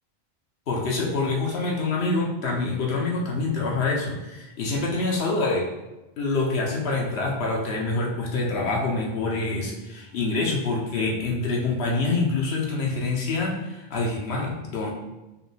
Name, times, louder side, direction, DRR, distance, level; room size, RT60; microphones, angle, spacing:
voice 1, 0.7-5.7 6.2-14.9, left 3 dB, 80° left, -1 dB, 0.9 m, -26 dB
4.7 x 2.2 x 3.2 m, 1.0 s
omnidirectional pair, 1.1 m